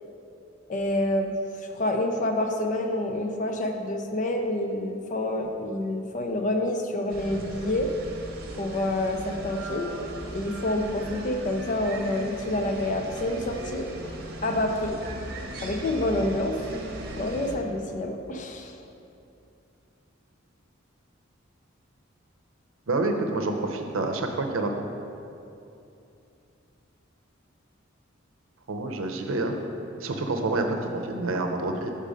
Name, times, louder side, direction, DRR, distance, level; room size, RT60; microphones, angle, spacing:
voice 1, 0.7-7.9 8.6-9.9 10.3-13.9 14.4-15.0 15.6-16.5 17.2-18.7, left 1 dB, 40° left, 4 dB, 0.4 m, -28 dB
sound 1, 7.1-17.6, right 1 dB, 50° right, 0.8 m, -38 dB
voice 2, 22.9-24.7 28.7-29.5 30.0-31.9, right 2 dB, 85° right, 4 dB, 0.6 m, -28 dB
5.3 x 5.3 x 5.0 m, 2.7 s
head